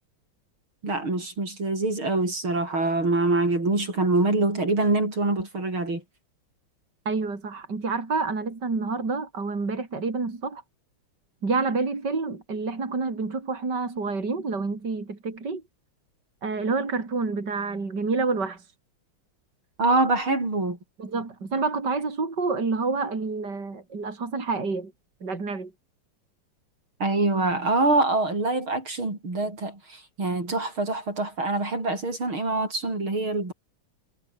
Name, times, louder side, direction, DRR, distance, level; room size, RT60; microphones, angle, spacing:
voice 1, 0.8-6.0 19.8-20.8 27.0-33.5, right 2 dB, 85° right, 8.3 m, -25 dB
voice 2, 7.1-10.6 11.4-15.6 16.4-18.6 21.0-24.9 25.2-25.7, right 4 dB, 55° right, 4.4 m, -28 dB
omnidirectional pair, 2.2 m